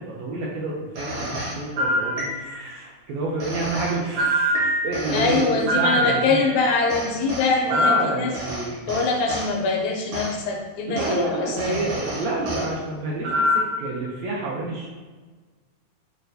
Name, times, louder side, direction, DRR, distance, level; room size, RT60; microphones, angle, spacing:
voice 1, 0.0-6.4 7.6-8.9 10.9-14.9, right 2 dB, 80° right, -4 dB, 1.6 m, -29 dB
sound 1, 1.0-2.7 3.4-6.6 6.9-9.5 10.1-10.3 11.0-11.2 11.6-12.7 13.2-13.8, equal, 60° right, 1.5 m, -25 dB
voice 2, 5.1-8.3 8.9-11.8, left 4 dB, 80° left, 0 dB, 1.8 m, -23 dB
6.0 x 2.1 x 2.6 m, 1.3 s
omnidirectional pair, 3.4 m